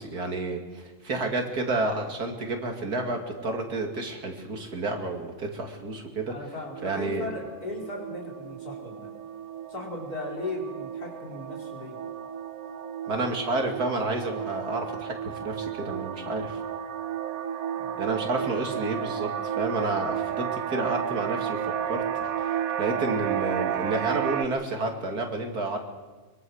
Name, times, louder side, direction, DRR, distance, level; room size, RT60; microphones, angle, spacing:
voice 1, 0.0-6.3 6.8-7.3 13.1-16.6 18.0-22.0 22.4-25.8, right 2 dB, 90° right, 3 dB, 3.1 m, -30 dB
voice 2, 6.3-9.1 9.7-12.0 17.8-18.2, left 2 dB, 80° left, -1 dB, 5.2 m, -37 dB
sound 1, 6.7-24.5, right 9 dB, 70° right, 1.4 m, -32 dB
23.5 x 22.5 x 6.5 m, 1.3 s
omnidirectional pair, 1.6 m